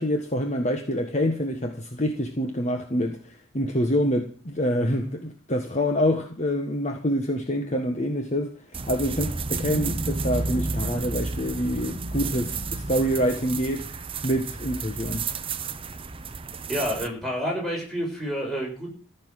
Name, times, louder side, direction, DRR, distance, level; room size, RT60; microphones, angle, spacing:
voice 1, 0.0-13.9 14.2-15.3, equal, 35° left, 1.5 m, -26 dB
sound 1, 8.7-17.1, right 4 dB, 25° right, 0.8 m, -31 dB
voice 2, 16.7-18.9, equal, ahead, 7.3 m, -29 dB
15.0 x 7.1 x 9.8 m
head